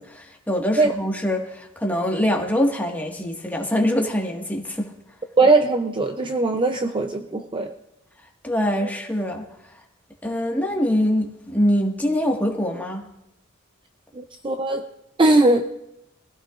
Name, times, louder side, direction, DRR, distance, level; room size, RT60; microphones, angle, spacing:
voice 1, 0.1-4.9 8.4-9.8 10.2-13.0, equal, 10° left, 0 dB, 1.7 m, -24 dB
voice 2, 5.4-7.7 14.1-14.8 15.2-15.7, right 2 dB, 25° right, 6 dB, 0.6 m, -19 dB
22.5 x 15.5 x 2.5 m, 0.85 s
head